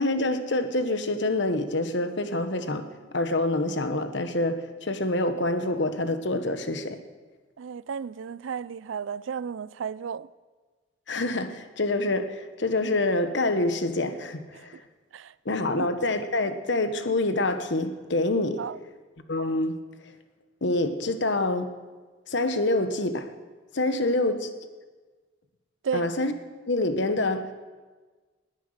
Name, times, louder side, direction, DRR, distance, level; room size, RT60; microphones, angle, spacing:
voice 1, 0.0-2.9 3.1-7.0 11.1-14.8 15.4-18.6 19.3-19.8 20.6-21.7 22.3-23.3 23.7-24.5 25.9-26.3 26.7-27.5, left 2 dB, 65° left, 1.1 m, -26 dB
voice 2, 7.6-10.3 14.5-14.8 15.1-15.3 15.8-15.9 18.6-18.8 24.0-24.2 25.8-26.1, right 6 dB, 80° right, 0.4 m, -33 dB
19.5 x 9.1 x 6.5 m
head